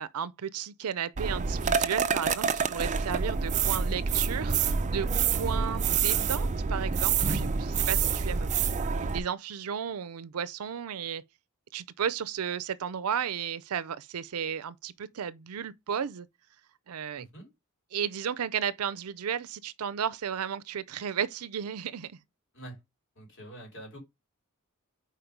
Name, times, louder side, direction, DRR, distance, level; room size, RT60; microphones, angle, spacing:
voice 1, 0.0-11.2 11.7-16.3 16.9-17.3 17.9-22.1, right 8 dB, 85° right, 0.5 m, -34 dB
sound 1, 1.2-9.2, right 6 dB, 35° right, 0.5 m, -27 dB
voice 2, 17.2-17.5 22.5-22.8 23.1-24.0, right 1 dB, 60° left, 3.5 m, -45 dB
5.1 x 4.6 x 4.6 m
head